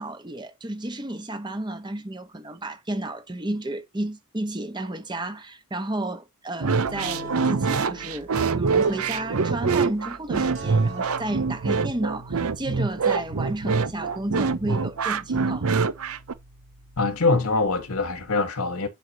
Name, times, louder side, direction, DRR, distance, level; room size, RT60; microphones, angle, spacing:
voice 1, 0.0-15.8, right 1 dB, 20° right, 1.0 m, -32 dB
sound 1, 6.6-16.3, right 5 dB, 80° right, 0.7 m, -24 dB
sound 2, 6.9-18.3, right 2 dB, 65° right, 3.3 m, -42 dB
voice 2, 17.0-18.9, left 3 dB, 80° left, 1.6 m, -23 dB
10.0 x 4.8 x 2.7 m
head